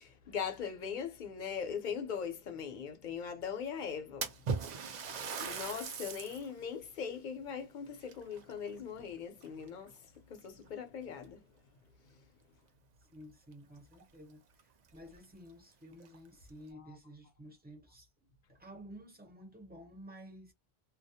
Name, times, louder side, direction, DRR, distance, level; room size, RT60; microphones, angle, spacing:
voice 1, 0.0-4.3 4.7-11.4 16.8-16.9, left 7 dB, 55° left, 0.7 m, -40 dB
Splash splatter, 4.2-6.5 7.0-7.1 8.0-9.1 9.4-9.9 10.7-10.8 11.2-11.3 13.5-13.6 13.9-14.0 14.6-14.7 15.1-15.2 15.9-16.5, right 5 dB, 55° right, 0.5 m, -39 dB
voice 2, 13.0-20.5, equal, 10° right, 0.6 m, -53 dB
2.3 x 2.0 x 2.7 m
omnidirectional pair, 1.0 m